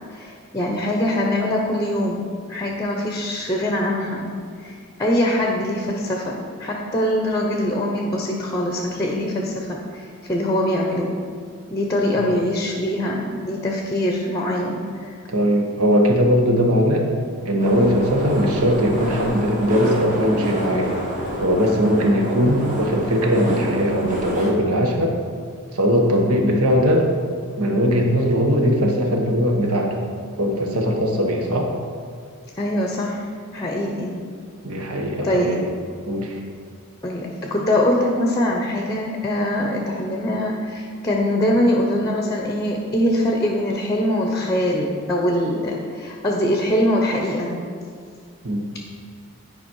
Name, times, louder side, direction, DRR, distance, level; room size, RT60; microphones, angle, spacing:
voice 1, 0.1-4.3 4.6-11.1 11.7-15.2 32.6-33.3 33.5-34.2 35.2-35.5 37.0-47.6, left 1 dB, 15° left, 0 dB, 0.7 m, -23 dB
voice 2, 15.3-17.0 17.4-20.9 21.4-25.2 25.7-27.1 27.6-29.9 30.4-31.7 34.6-35.7 36.0-36.4 48.4-48.7, equal, 80° right, 1 dB, 1.3 m, -19 dB
sound 1, 17.6-24.5, equal, 35° right, 1.4 m, -28 dB
10.5 x 5.1 x 4.6 m, 2.1 s
head